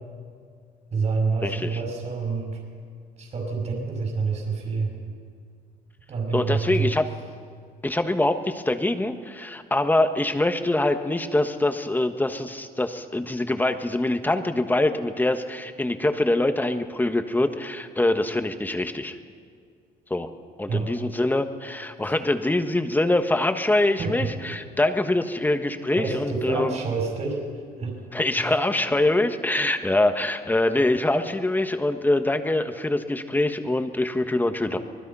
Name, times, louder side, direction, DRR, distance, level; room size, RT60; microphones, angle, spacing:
voice 1, 0.9-2.6 3.2-5.0 6.1-6.9 20.7-20.9 22.0-22.1 24.0-24.3 26.0-27.4 27.8-28.0 28.3-28.6, right 4 dB, 45° right, -1 dB, 5.6 m, -27 dB
voice 2, 1.4-1.8 6.3-7.1 7.8-19.2 20.1-20.3 20.6-26.8 28.1-34.8, left 2 dB, 10° left, 7 dB, 1.4 m, -24 dB
25.0 x 20.0 x 5.6 m, 2.2 s
cardioid pair, 110°, 17 cm